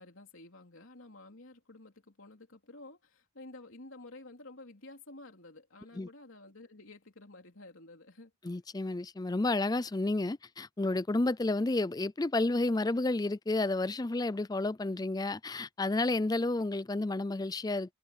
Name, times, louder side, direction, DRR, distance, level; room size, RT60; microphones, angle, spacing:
voice 1, 0.0-8.3, left 2 dB, 70° left, 3.5 m, -51 dB
voice 2, 8.4-17.9, left 2 dB, 20° left, 0.4 m, -31 dB
head